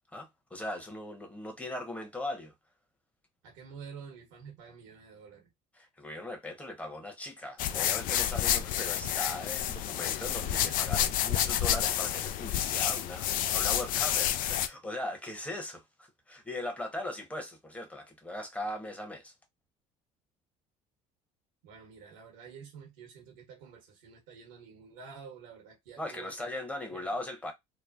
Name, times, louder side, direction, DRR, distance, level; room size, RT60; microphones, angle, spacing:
voice 1, 0.1-2.5 5.8-19.3 26.0-27.5, left 1 dB, 10° left, 1.1 m, -39 dB
voice 2, 3.4-5.5 21.6-27.1, right 6 dB, 90° right, 0.9 m, -49 dB
sound 1, 7.6-14.7, left 11 dB, 65° left, 0.4 m, -29 dB
3.0 x 2.1 x 2.5 m
supercardioid pair, 75°, 15 cm